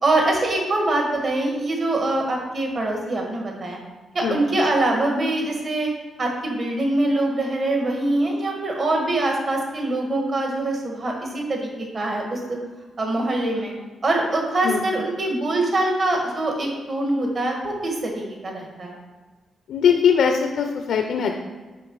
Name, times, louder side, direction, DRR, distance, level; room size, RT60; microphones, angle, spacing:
voice 1, 0.0-3.8 4.1-5.9 6.2-12.6 13.0-13.7 14.0-19.0, right 2 dB, 45° right, 1 dB, 1.7 m, -24 dB
voice 2, 19.7-21.4, left 7 dB, 80° left, 4 dB, 0.5 m, -20 dB
7.6 x 5.3 x 4.7 m, 1.3 s
cardioid pair, 115°, 0 cm